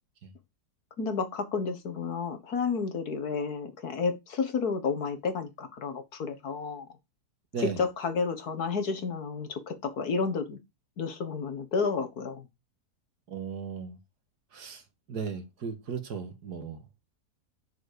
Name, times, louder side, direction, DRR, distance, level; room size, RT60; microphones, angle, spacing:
voice 1, 1.0-6.9 7.6-10.6 11.0-12.5, left 5 dB, 70° left, 2.0 m, -31 dB
voice 2, 13.3-14.0 14.5-14.8 15.1-16.8, right 6 dB, 80° right, 2.2 m, -36 dB
6.9 x 6.6 x 6.8 m
omnidirectional pair, 1.7 m